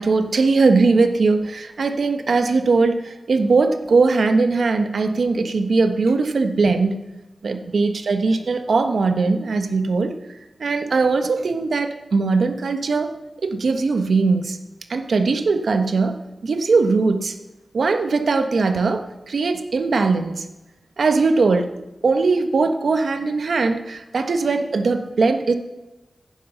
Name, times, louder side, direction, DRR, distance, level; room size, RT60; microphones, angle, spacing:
voice 1, 0.0-7.0 7.4-13.1 13.4-14.6 14.9-17.4 17.7-20.5 21.0-21.7 22.0-25.5, right 4 dB, 80° right, 7 dB, 1.3 m, -20 dB
15.5 x 10.0 x 5.8 m, 1.0 s
wide cardioid pair, 115°, 0 cm